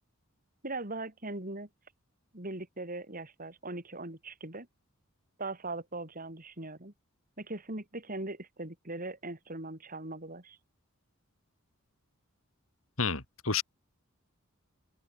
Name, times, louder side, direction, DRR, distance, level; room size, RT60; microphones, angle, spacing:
voice 1, 0.6-1.7 2.3-4.7 5.4-6.9 7.4-10.6, right 2 dB, 40° right, 4.2 m, -40 dB
voice 2, 13.0-13.6, left 5 dB, 70° left, 4.7 m, -30 dB
open air
head